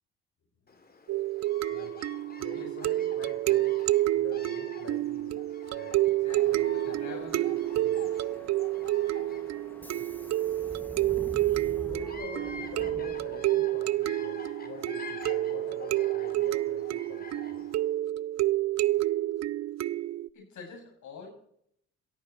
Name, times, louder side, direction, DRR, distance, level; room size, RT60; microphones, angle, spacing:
Bird vocalization bird call bird song, 0.7-17.9, left 4 dB, 30° left, 2.8 m, -48 dB
sound 1, 1.1-20.3, right 15 dB, 60° right, 0.5 m, -29 dB
voice 1, 2.4-5.4 5.7-6.1 6.4-8.1 9.9-10.2 11.8-17.7, left 3 dB, 55° left, -1 dB, 5.1 m, -46 dB
voice 2, 6.1-7.5 8.2-8.5 20.3-21.3, left 5 dB, 70° left, 1 dB, 7.3 m, -47 dB
Subway metro underground, 6.3-13.7, left 1 dB, 5° left, 1.5 m, -47 dB
17.0 x 14.5 x 4.5 m, 0.67 s
cardioid pair, 90°, 30 cm